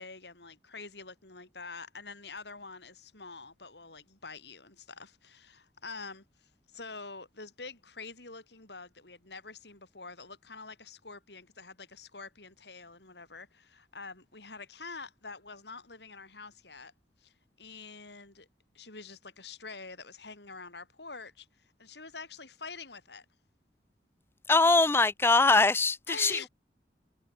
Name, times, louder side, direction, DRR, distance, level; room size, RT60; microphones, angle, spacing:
voice 1, 0.0-16.9 17.2-18.5 18.7-23.3 26.1-26.5, left 4 dB, 75° left, 6.3 m, -46 dB
voice 2, 24.5-26.5, left 3 dB, 15° left, 0.4 m, -23 dB
head